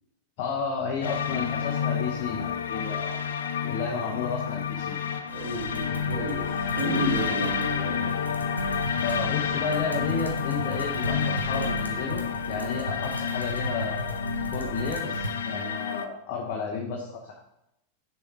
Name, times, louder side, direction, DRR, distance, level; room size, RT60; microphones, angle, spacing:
voice 1, 0.4-3.2 3.6-5.0 9.0-14.2 14.5-17.4, left 5 dB, 45° left, -1 dB, 0.9 m, -32 dB
sound 1, 1.0-16.1, left 7 dB, 65° left, 0.3 m, -30 dB
voice 2, 5.3-8.1, equal, 55° right, -2 dB, 1.6 m, -31 dB
sound 2, 5.3-15.3, right 2 dB, 80° right, 0.6 m, -37 dB
6.5 x 3.4 x 4.4 m, 0.84 s
figure-of-eight pair, 90°, 0 cm